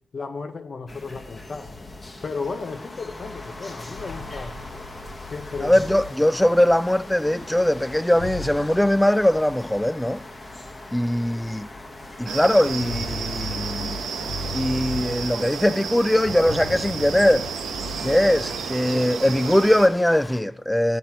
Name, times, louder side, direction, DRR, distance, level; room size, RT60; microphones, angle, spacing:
voice 1, 0.1-1.8 2.2-4.6 5.3-5.8, left 4 dB, 50° left, 0.6 m, -34 dB
sound 1, 0.9-20.4, left 2 dB, 35° left, 1.1 m, -41 dB
sound 2, 3.8-6.6 7.9-9.6 10.6-10.7 11.1-11.2 12.5-15.6 16.1-18.7, left 2 dB, 75° left, 3.9 m, -37 dB
voice 2, 5.6-10.2 10.9-11.7 12.2-14.0 14.5-17.5 18.0-21.0, left 1 dB, 5° left, 0.3 m, -21 dB
sound 3, 12.3-19.9, right 6 dB, 90° right, 0.8 m, -32 dB
9.2 x 5.8 x 5.7 m
cardioid pair, 65°, 0 cm